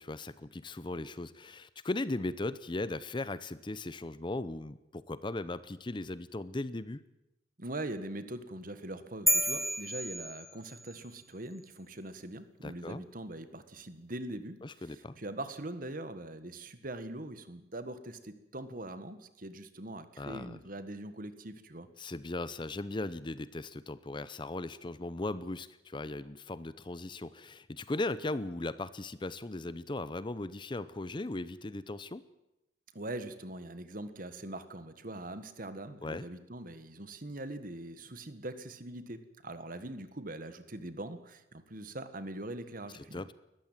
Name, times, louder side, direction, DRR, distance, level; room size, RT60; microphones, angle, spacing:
voice 1, 0.0-7.0 12.6-13.0 14.6-15.1 20.2-20.6 22.0-32.2 36.0-36.3 43.1-43.3, left 2 dB, 25° left, 16 dB, 0.6 m, -38 dB
voice 2, 7.6-14.6 15.2-21.9 32.9-43.3, right 1 dB, 50° right, 11 dB, 1.6 m, -42 dB
sound 1, 9.3-11.0, right 1 dB, ahead, 1.1 m, -31 dB
20.5 x 14.5 x 9.0 m, 0.91 s
head